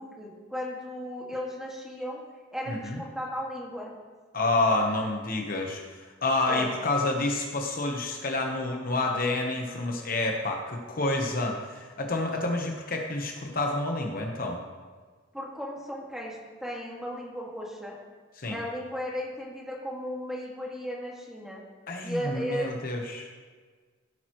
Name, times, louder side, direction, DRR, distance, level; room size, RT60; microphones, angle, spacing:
voice 1, 0.0-2.2 2.5-3.9 6.5-6.7 15.3-18.0 18.5-21.6 22.0-22.7, equal, 5° right, -3 dB, 1.9 m, -35 dB
voice 2, 2.7-3.0 4.3-14.6 18.4-18.6 21.9-23.3, left 2 dB, 45° left, 2 dB, 1.0 m, -29 dB
16.0 x 8.8 x 3.1 m, 1.5 s
head